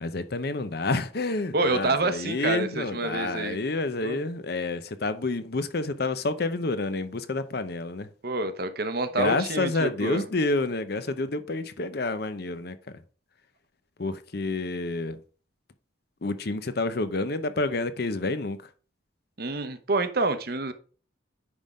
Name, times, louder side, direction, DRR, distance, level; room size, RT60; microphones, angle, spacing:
voice 1, 0.0-8.1 9.2-12.8 14.0-15.2 16.2-18.6, left 3 dB, 55° left, 0.7 m, -29 dB
voice 2, 1.5-3.6 4.0-4.2 8.2-10.3 19.4-20.7, right 2 dB, 50° right, 0.8 m, -27 dB
9.6 x 3.6 x 5.1 m
head